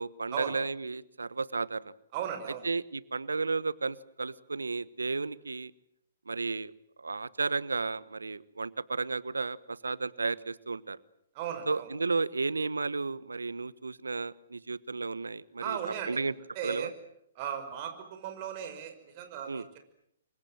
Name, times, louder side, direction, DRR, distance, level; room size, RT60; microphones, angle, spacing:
voice 1, 0.0-1.8 2.6-5.7 6.3-6.7 7.0-11.0 11.7-15.8 16.1-16.3 16.6-16.9 19.5-19.6, right 4 dB, 80° right, 19 dB, 1.2 m, -33 dB
voice 2, 2.1-2.7 11.3-11.9 15.6-16.2 16.5-16.9 17.3-19.8, right 9 dB, 40° right, 7 dB, 5.8 m, -37 dB
29.5 x 24.0 x 7.8 m, 0.76 s
figure-of-eight pair, 125°, 0 cm